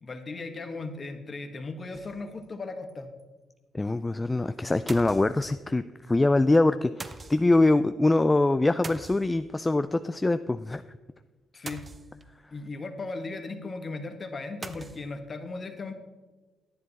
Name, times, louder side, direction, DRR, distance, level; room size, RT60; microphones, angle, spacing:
voice 1, 0.0-3.1 11.5-11.9 12.5-15.9, left 3 dB, 35° left, 6 dB, 1.4 m, -37 dB
sound 1, 1.9-2.5 2.9-3.0 3.2-3.3 4.9-5.7 7.0-7.6 8.8-9.7 11.7-12.4 14.6-15.1, right 3 dB, 30° right, 0.7 m, -43 dB
voice 2, 3.7-10.8, left 2 dB, 20° left, 11 dB, 0.3 m, -24 dB
10.5 x 9.5 x 4.1 m, 1.3 s
cardioid pair, 90°, 0 cm